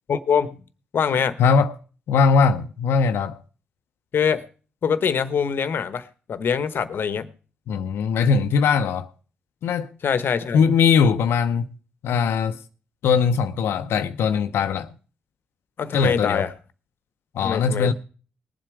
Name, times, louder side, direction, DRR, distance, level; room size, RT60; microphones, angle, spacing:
voice 1, 0.1-0.6 0.9-1.4 4.1-4.4 4.8-7.3 10.0-10.6 15.8-16.5 17.4-17.9, left 7 dB, 60° left, 1.0 m, -24 dB
voice 2, 1.4-1.7 2.1-3.4 7.7-9.1 9.6-9.9 10.5-11.7 12.0-12.6 13.0-14.9 15.9-16.5 17.3-17.9, left 5 dB, 75° left, 0.7 m, -20 dB
19.5 x 7.6 x 4.8 m
supercardioid pair, 55°, 4 cm